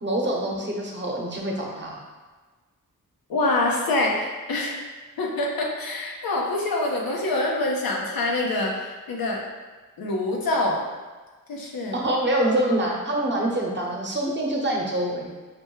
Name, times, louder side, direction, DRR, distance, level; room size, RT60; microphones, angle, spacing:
voice 1, 0.0-2.0 11.9-15.3, right 1 dB, 30° right, -2 dB, 0.9 m, -25 dB
voice 2, 3.3-4.7 5.2-9.4 10.0-10.8 11.5-12.0, left 2 dB, 85° left, -1 dB, 0.8 m, -25 dB
5.1 x 2.1 x 3.1 m, 1.3 s
cardioid pair, 60°, 35 cm